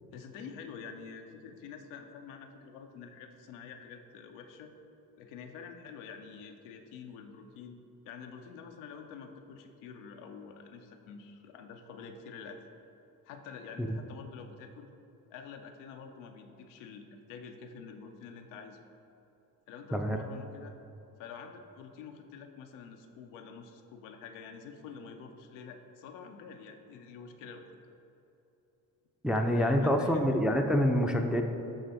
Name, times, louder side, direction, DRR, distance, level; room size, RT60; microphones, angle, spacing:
voice 1, 0.1-4.7 5.2-7.8 8.1-12.6 13.3-14.9 15.3-18.8 19.7-20.7 21.2-27.8 29.3-30.4, left 6 dB, 85° left, 5 dB, 0.6 m, -47 dB
voice 2, 29.2-31.4, equal, ahead, 3 dB, 0.5 m, -26 dB
8.0 x 3.3 x 4.1 m, 2.9 s
hypercardioid pair, 45°, 47 cm